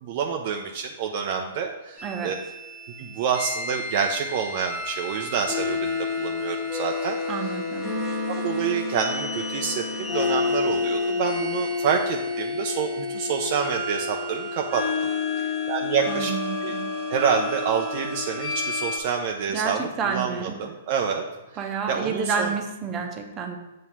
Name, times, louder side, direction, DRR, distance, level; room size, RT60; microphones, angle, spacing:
voice 1, 0.0-2.4 3.0-7.2 8.3-14.8 15.7-16.3 16.6-16.7 17.1-21.2 21.9-22.5, right 6 dB, 50° right, 2 dB, 0.5 m, -27 dB
sound 1, 2.0-19.0, left 4 dB, 20° left, 1.4 m, -29 dB
voice 2, 2.0-2.3 7.3-8.0 15.4-15.6 16.1-16.9 19.5-20.6 21.6-23.6, right 5 dB, 25° right, 3 dB, 0.9 m, -30 dB
7.2 x 2.8 x 5.9 m, 1.0 s
hypercardioid pair, 130°, 0 cm